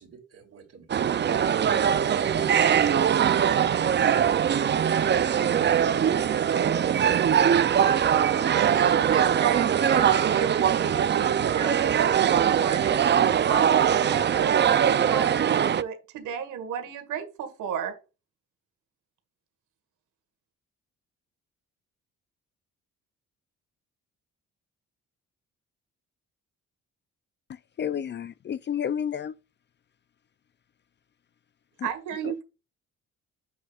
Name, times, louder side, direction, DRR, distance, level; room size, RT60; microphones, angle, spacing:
voice 1, 0.0-6.1, right 6 dB, 50° right, 3.2 m, -44 dB
sound 1, 0.9-15.8, right 8 dB, 35° right, 0.5 m, -22 dB
voice 2, 8.5-17.9 31.8-32.4, right 8 dB, 85° right, 1.7 m, -33 dB
voice 3, 27.5-29.3 31.8-31.9 32.2-32.4, left 8 dB, 35° left, 0.4 m, -31 dB
8.3 x 7.9 x 2.4 m
cardioid pair, 90°, 30 cm